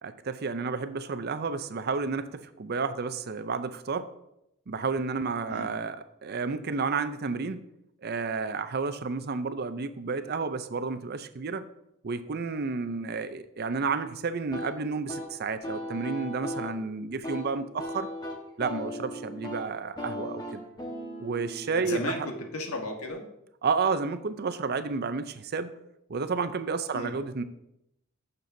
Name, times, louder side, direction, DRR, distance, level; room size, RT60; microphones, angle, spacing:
voice 1, 0.0-4.1 4.7-7.6 8.0-11.6 12.0-18.1 18.6-20.6 21.2-22.3 23.6-25.7 26.1-27.4, right 4 dB, 45° right, 11 dB, 0.5 m, -31 dB
sound 1, 14.5-23.1, equal, 20° left, 1.3 m, -38 dB
voice 2, 21.7-23.3 26.9-27.1, left 2 dB, 80° left, 2 dB, 1.4 m, -34 dB
15.0 x 6.7 x 2.7 m, 0.83 s
head